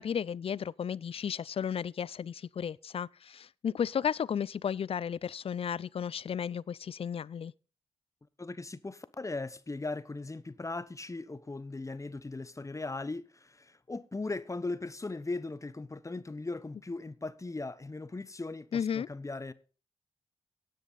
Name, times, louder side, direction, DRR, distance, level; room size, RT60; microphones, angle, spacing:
voice 1, 0.0-7.5 18.7-19.1, left 8 dB, 50° left, 0.4 m, -34 dB
voice 2, 8.4-19.5, left 3 dB, 25° left, 0.9 m, -38 dB
17.0 x 6.5 x 4.1 m
supercardioid pair, 40°, 12 cm